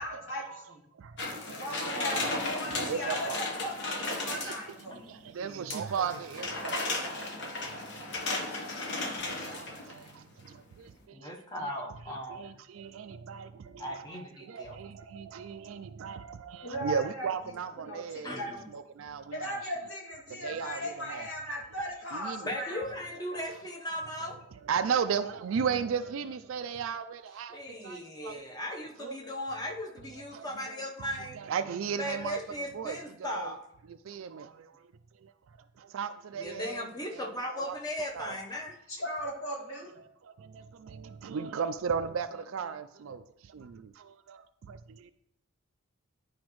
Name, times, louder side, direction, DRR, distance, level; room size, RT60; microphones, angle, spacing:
voice 1, 0.0-0.4 0.7-0.8 1.6-5.0 16.6-17.3 17.8-18.6 19.3-22.8 38.9-39.9, equal, 80° left, -3 dB, 2.4 m, -37 dB
voice 2, 0.9-2.0 2.4-3.4 4.2-4.5 4.8-7.2 7.7-8.7 9.2-11.3 11.6-11.7 12.1-18.4 18.7-19.4 20.3-21.3 22.1-22.5 23.3-23.4 24.6-28.4 29.0-29.2 30.3-31.1 31.3-33.5 33.9-34.9 35.2-37.8 38.1-38.4 40.0-45.1, right 6 dB, 75° right, 9 dB, 0.4 m, -37 dB
sound 1, 1.2-4.8 5.7-10.1 10.5-10.6, left 2 dB, 60° left, 1.1 m, -35 dB
voice 3, 1.7-2.1 4.9-5.2 11.1-12.4 13.8-14.8 18.2-18.5 22.4-24.4 27.5-31.4 32.0-33.6 36.4-38.7, left 1 dB, 20° left, 1 dB, 0.9 m, -37 dB
10.5 x 5.0 x 3.1 m, 0.78 s
head